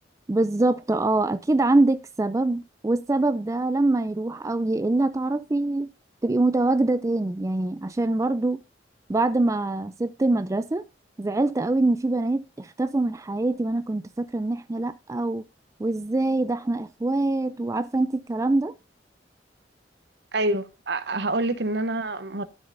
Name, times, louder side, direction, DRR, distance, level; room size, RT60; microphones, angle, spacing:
voice 1, 0.3-5.9 6.2-8.6 9.1-10.8 11.2-15.4 15.8-18.7, right 2 dB, 20° right, 0.3 m, -24 dB
voice 2, 20.3-22.4, right 2 dB, 65° right, 0.9 m, -26 dB
12.5 x 6.6 x 2.6 m
head